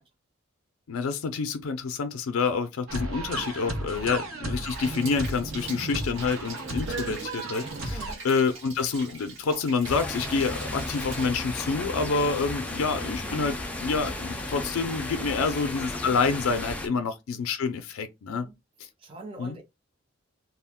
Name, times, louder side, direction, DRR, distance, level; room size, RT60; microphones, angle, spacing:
voice 1, 0.9-8.0 8.2-18.5 18.8-18.9 19.4-19.6, left 4 dB, 85° left, 0.4 m, -28 dB
sound 1, 2.9-8.1, right 1 dB, 80° right, 0.9 m, -34 dB
Rain, 4.6-11.3, right 4 dB, 60° right, 1.1 m, -43 dB
voice 2, 7.9-8.2 15.1-15.6 16.9-17.1 18.3-18.5 19.0-19.6, right 2 dB, 25° right, 0.7 m, -45 dB
sound 2, 9.8-16.9, left 1 dB, 5° left, 0.4 m, -34 dB
2.3 x 2.1 x 3.5 m
head